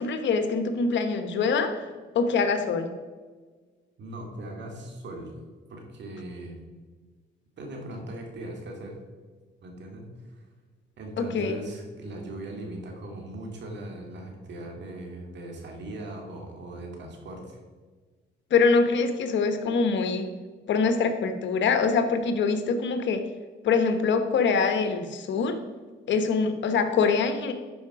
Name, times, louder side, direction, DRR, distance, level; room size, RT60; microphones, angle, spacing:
voice 1, 0.0-1.9 2.1-2.9 11.2-11.5 18.5-20.3 20.7-23.2 23.6-25.6 26.1-27.5, left 5 dB, 70° left, 8 dB, 1.2 m, -24 dB
voice 2, 4.0-5.3 5.7-6.6 7.6-9.0 9.6-10.4 11.0-17.6, right 1 dB, 65° right, 1 dB, 2.5 m, -39 dB
11.5 x 5.0 x 4.9 m, 1.4 s
cardioid pair, 90°, 20 cm